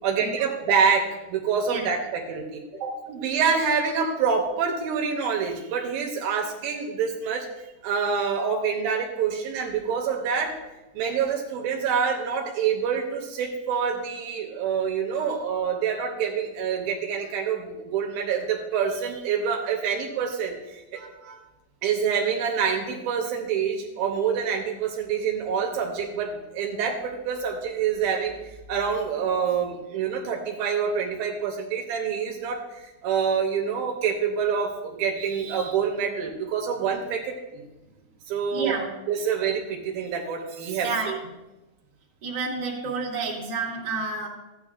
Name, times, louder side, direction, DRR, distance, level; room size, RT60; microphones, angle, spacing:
voice 1, 0.0-2.6 3.1-7.5 7.8-10.5 10.9-21.4 21.8-28.3 28.7-37.6 38.3-38.8 39.1-41.2, right 6 dB, 75° right, 2 dB, 2.6 m, -26 dB
voice 2, 38.5-38.9 40.8-41.1 42.2-44.3, right 4 dB, 35° right, -4 dB, 2.0 m, -29 dB
14.5 x 9.1 x 2.5 m, 1.0 s
omnidirectional pair, 4.4 m